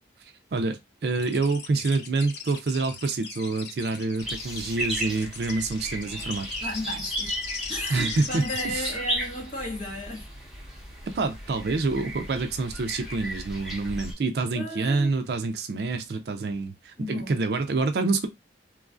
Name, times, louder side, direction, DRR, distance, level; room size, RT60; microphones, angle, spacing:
voice 1, 0.2-6.5 7.9-8.9 11.1-18.3, right 3 dB, 60° right, 0.4 m, -27 dB
sound 1, 1.1-8.6, left 6 dB, 70° left, 0.6 m, -40 dB
sound 2, 4.2-14.1, equal, 5° right, 0.9 m, -35 dB
voice 2, 6.6-7.3 7.7-10.3 14.5-15.1 17.0-17.4, left 1 dB, 45° left, 1.4 m, -34 dB
3.0 x 2.3 x 2.4 m
head